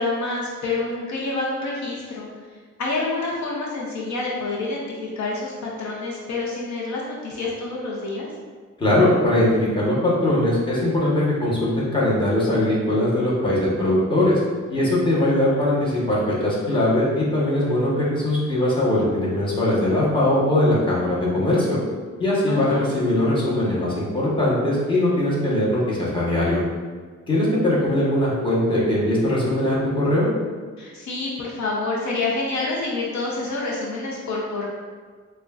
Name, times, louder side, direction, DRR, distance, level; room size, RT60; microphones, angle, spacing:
voice 1, 0.0-2.3 2.8-8.3 22.5-22.8 30.8-34.7, left 3 dB, 70° left, -3 dB, 0.7 m, -27 dB
voice 2, 8.8-14.4 14.7-21.8 22.2-26.6 27.3-30.3, left 1 dB, 15° left, -7 dB, 1.0 m, -21 dB
6.1 x 2.3 x 2.4 m, 1.5 s
wide cardioid pair, 150°, 30 cm